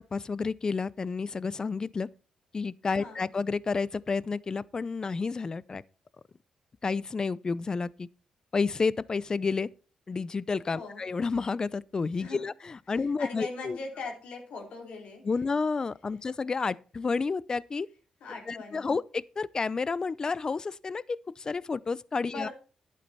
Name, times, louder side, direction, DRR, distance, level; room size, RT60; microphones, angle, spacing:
voice 1, 0.0-2.1 2.5-5.8 6.8-8.1 8.5-9.7 10.1-13.8 15.2-17.9 18.5-22.5, left 4 dB, 35° left, 0.5 m, -30 dB
voice 2, 12.9-15.2 18.2-18.9 22.3-22.5, left 3 dB, 75° left, 3.5 m, -40 dB
11.0 x 8.5 x 4.2 m
cardioid pair, 75°, 2 cm